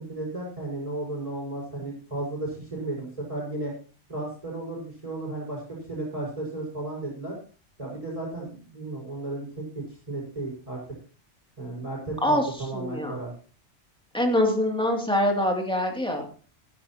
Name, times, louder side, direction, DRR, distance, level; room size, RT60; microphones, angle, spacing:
voice 1, 0.0-3.7 4.1-7.4 7.8-10.8 11.6-13.3, right 2 dB, 30° right, -3 dB, 6.2 m, -34 dB
voice 2, 12.7-13.1 14.1-16.2, left 1 dB, 5° left, 1 dB, 2.7 m, -24 dB
15.5 x 14.5 x 3.0 m, 0.38 s
omnidirectional pair, 1.2 m